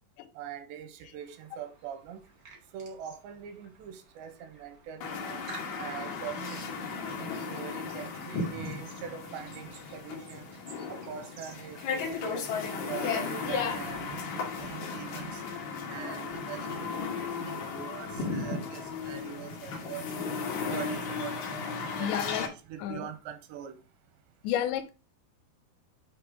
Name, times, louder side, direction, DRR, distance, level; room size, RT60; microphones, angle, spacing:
voice 1, 0.4-2.2 2.7-5.4 5.8-6.6 7.1-10.5 10.9-15.4 15.9-16.9 17.2-20.0 20.7-23.7, right 9 dB, 85° right, 3.0 m, -43 dB
sound 1, 1.2-16.8, right 3 dB, 65° right, 1.0 m, -55 dB
sound 2, 5.0-22.5, left 5 dB, 75° left, 1.6 m, -35 dB
voice 2, 22.0-22.4 22.8-23.1 24.4-24.9, left 10 dB, 90° left, 2.9 m, -31 dB
7.8 x 3.1 x 4.8 m
omnidirectional pair, 5.0 m